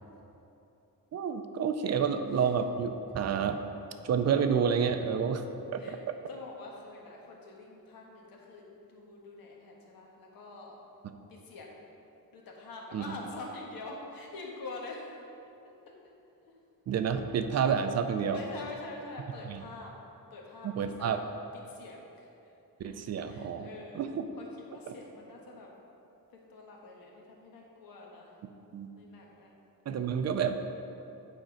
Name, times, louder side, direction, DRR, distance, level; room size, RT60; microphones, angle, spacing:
voice 1, 1.1-3.6 4.0-5.4 5.7-6.0 12.9-13.0 16.9-18.4 19.4-19.6 20.6-21.2 22.8-23.7 24.0-24.3 24.9-25.0 28.7-28.9 29.9-30.6, right 7 dB, 50° right, 8 dB, 0.4 m, -29 dB
voice 2, 6.3-10.8 11.3-11.8 12.3-15.1 16.5-16.6 18.3-19.9 20.3-21.1 21.5-22.5 22.8-24.0 24.4-25.7 26.3-28.3 28.9-29.5, left 3 dB, 85° left, -1 dB, 1.4 m, -46 dB
8.9 x 4.4 x 5.0 m, 2.8 s
wide cardioid pair, 175°, 34 cm